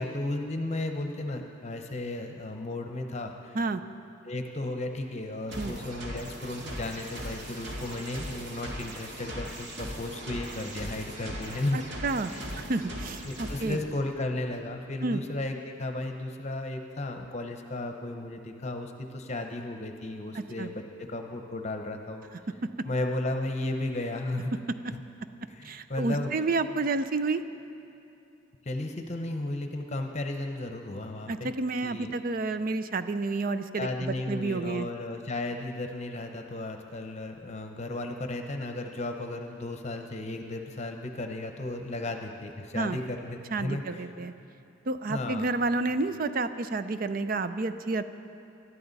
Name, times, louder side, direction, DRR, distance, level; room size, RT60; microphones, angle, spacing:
voice 1, 0.0-3.6 4.2-11.8 12.3-12.4 13.3-22.2 22.8-24.5 24.9-25.0 25.5-26.3 28.6-31.5 31.8-32.1 33.8-44.1 45.1-45.5, left 2 dB, 35° left, 4 dB, 0.8 m, -34 dB
sound 1, 5.5-13.8, equal, 60° right, 2.1 m, -39 dB
voice 2, 11.7-13.8 15.0-15.2 20.3-20.7 22.6-22.9 25.6-27.4 31.3-34.9 42.7-43.0 43.5-44.3 44.9-48.0, right 3 dB, 45° right, 11 dB, 0.5 m, -30 dB
20.0 x 12.5 x 4.1 m, 2.8 s
head